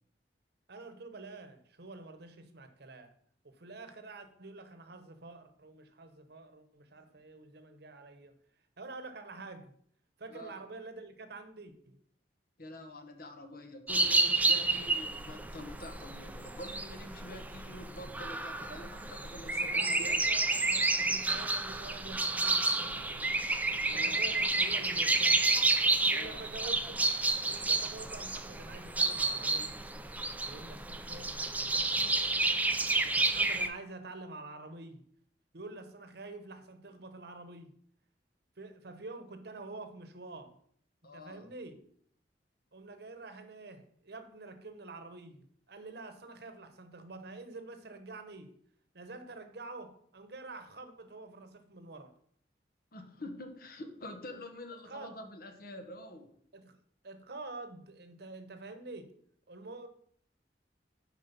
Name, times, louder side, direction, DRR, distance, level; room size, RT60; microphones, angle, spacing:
voice 1, 0.7-3.1 3.4-8.4 8.8-9.7 10.2-12.0 18.7-18.9 19.5-23.3 23.9-25.5 26.1-26.8 27.5-29.9 30.4-32.5 33.1-35.0 35.5-37.7 38.6-40.6 41.1-41.8 42.7-48.6 48.9-52.1 54.3-54.4 54.8-55.1 56.5-56.8 57.0-59.1 59.5-59.9, right 3 dB, 65° right, 1.0 m, -47 dB
voice 2, 12.6-20.2 23.9-24.2 26.1-26.4 41.0-41.4 52.9-56.3, left 1 dB, 55° left, 1.1 m, -46 dB
sound 1, 13.9-33.7, right 3 dB, 10° right, 0.5 m, -30 dB
8.1 x 5.0 x 5.2 m
head